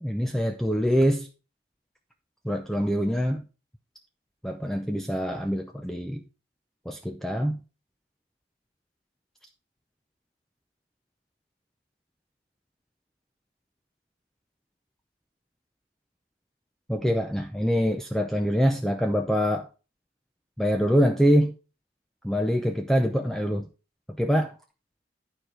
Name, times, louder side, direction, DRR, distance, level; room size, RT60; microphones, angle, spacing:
voice 1, 0.0-1.3 2.4-3.4 4.4-6.2 6.9-7.6 16.9-19.7 20.6-21.5 22.2-23.7 24.2-24.6, equal, ahead, 0.6 m, -24 dB
11.5 x 4.7 x 4.9 m
head